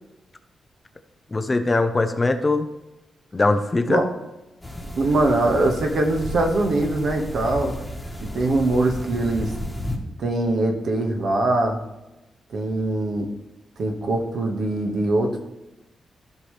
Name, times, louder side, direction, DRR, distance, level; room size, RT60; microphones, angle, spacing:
voice 1, 1.3-2.7 3.3-4.0, left 2 dB, 20° left, 8 dB, 0.6 m, -21 dB
sound 1, 4.6-10.0, left 1 dB, ahead, 1.5 m, -33 dB
voice 2, 5.0-7.7 8.2-9.5 10.2-11.8 12.5-13.3 13.8-15.4, right 2 dB, 60° right, 2 dB, 1.6 m, -22 dB
15.0 x 5.7 x 3.3 m, 1.0 s
wide cardioid pair, 155°, 0 cm